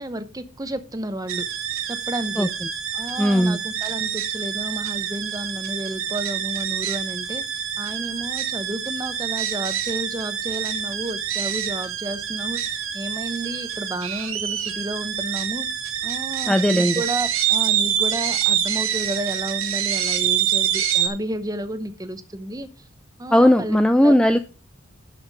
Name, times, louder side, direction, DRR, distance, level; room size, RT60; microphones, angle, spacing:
voice 1, 0.0-1.5 1.8-2.5 2.9-15.7 16.0-22.7 23.2-24.2, right 1 dB, 20° right, 0.8 m, -31 dB
sound 1, 1.3-21.1, right 9 dB, 90° right, 1.6 m, -26 dB
voice 2, 3.2-3.6 16.5-16.9 23.3-24.4, equal, 5° left, 0.4 m, -17 dB
12.0 x 5.9 x 4.8 m
head